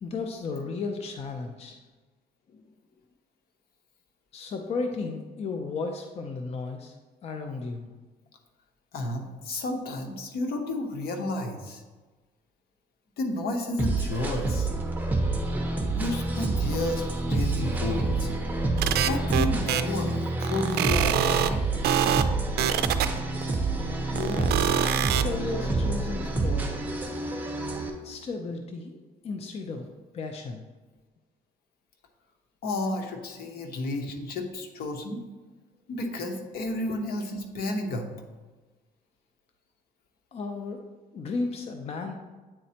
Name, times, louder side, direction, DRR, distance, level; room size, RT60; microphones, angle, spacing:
voice 1, 0.0-1.8 2.5-2.6 4.3-6.9 7.2-7.9 24.1-24.8 25.2-26.8 28.0-29.9 30.1-30.6 40.3-40.8 41.1-42.1, left 4 dB, 40° left, 5 dB, 0.5 m, -34 dB
voice 2, 8.9-11.8 13.2-14.7 15.9-18.3 18.9-21.5 32.6-35.2 35.9-38.1, left 2 dB, 65° left, 4 dB, 1.0 m, -32 dB
sound 1, 13.8-27.9, right 2 dB, 10° right, 1.0 m, -28 dB
sound 2, 18.8-19.8 20.4-21.5 21.8-22.2 22.6-23.5 24.2-25.2, right 11 dB, 70° right, 0.4 m, -24 dB
8.8 x 4.1 x 2.8 m, 1.3 s
cardioid pair, 110°, 17 cm